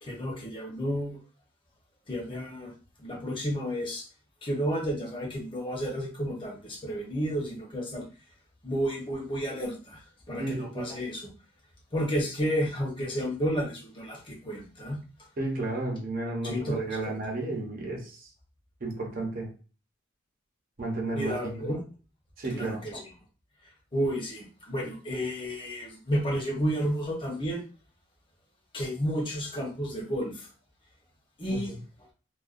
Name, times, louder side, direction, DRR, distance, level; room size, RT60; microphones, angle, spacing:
voice 1, 0.0-1.2 2.1-2.7 3.0-4.0 4.4-8.0 8.6-10.0 10.3-11.3 11.9-15.0 16.4-17.2 21.1-21.8 22.5-23.0 23.9-27.6 28.7-30.3 31.4-31.7, equal, 25° left, -2 dB, 0.8 m, -31 dB
voice 2, 10.4-10.9 15.4-18.3 18.8-19.5 20.8-21.7 22.4-22.8 31.7-31.8, right 2 dB, 45° right, 1 dB, 0.7 m, -32 dB
2.3 x 2.2 x 2.4 m, 0.37 s
head